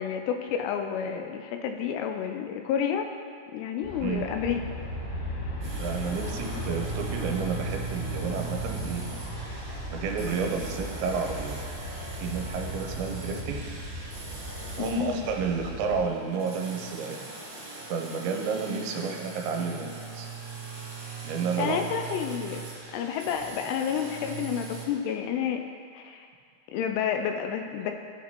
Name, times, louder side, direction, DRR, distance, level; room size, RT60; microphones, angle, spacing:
voice 1, 0.0-3.1 3.5-4.6 14.8-15.3 19.0-19.1 21.6-22.6 22.9-25.6 25.9-26.3 26.7-27.9, left 8 dB, 85° left, 5 dB, 2.4 m, -30 dB
Aircraft, 3.8-16.0, equal, 60° left, 3.4 m, -37 dB
sound 1, 5.6-24.8, right 5 dB, 65° right, 1.0 m, -40 dB
voice 2, 5.8-9.0 9.9-11.6 12.2-13.7 14.8-17.2 17.9-20.3 21.2-21.9, right 5 dB, 85° right, 2 dB, 2.9 m, -31 dB
16.0 x 5.9 x 3.0 m, 2.1 s
omnidirectional pair, 5.3 m